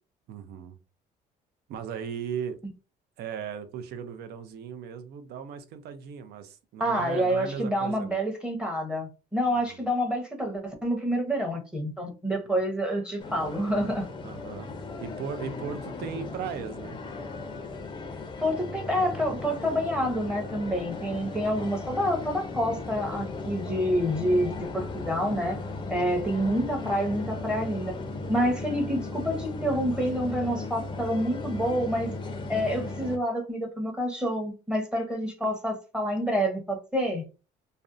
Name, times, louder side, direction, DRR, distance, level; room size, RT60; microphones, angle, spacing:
voice 1, 0.3-0.8 1.7-2.6 3.2-8.2 9.4-9.9 12.4-12.5 14.2-14.7 15.0-17.0, right 7 dB, 70° right, 0.5 m, -37 dB
voice 2, 6.8-14.1 18.4-25.6 25.9-27.9 28.3-32.1 32.5-37.2, equal, 5° right, 0.7 m, -28 dB
sound 1, 13.2-33.2, left 3 dB, 25° left, 0.5 m, -36 dB
2.5 x 2.1 x 2.4 m
cardioid pair, 110°, 17 cm